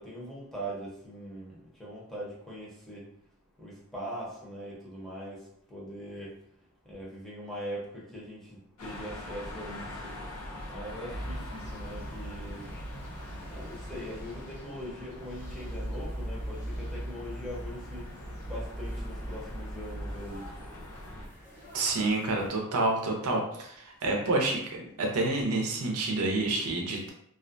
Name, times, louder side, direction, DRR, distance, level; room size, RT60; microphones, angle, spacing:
voice 1, 0.0-3.1 3.6-6.3 6.9-10.1 10.7-12.7 13.4-18.0 18.4-20.5, equal, ahead, -7 dB, 0.7 m, -41 dB
sound 1, 8.8-21.3, left 1 dB, 80° left, 0.5 m, -44 dB
sound 2, 11.1-22.5, equal, 55° left, 1.3 m, -40 dB
voice 2, 21.7-27.1, right 2 dB, 85° right, 1 dB, 0.6 m, -28 dB
2.4 x 2.1 x 2.5 m, 0.69 s
head